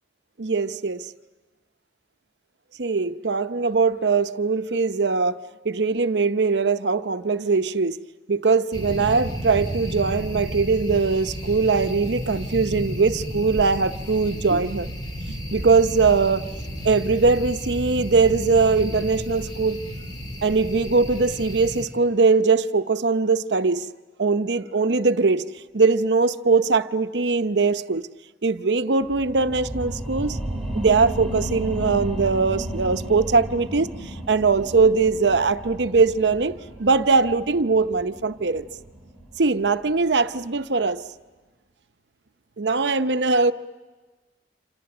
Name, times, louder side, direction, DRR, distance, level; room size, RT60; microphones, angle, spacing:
voice 1, 0.4-1.1 2.8-5.4 5.6-8.0 8.3-14.9 15.3-16.5 16.8-19.8 20.4-23.8 24.2-25.5 25.7-28.0 28.4-30.4 30.7-33.9 34.3-38.7 39.4-41.0 42.6-43.5, right 4 dB, 85° right, 0.8 m, -21 dB
sound 1, 8.7-21.9, equal, 25° left, 2.9 m, -32 dB
sound 2, 29.0-40.2 40.6-40.7, right 1 dB, ahead, 2.4 m, -34 dB
27.5 x 27.0 x 7.9 m
head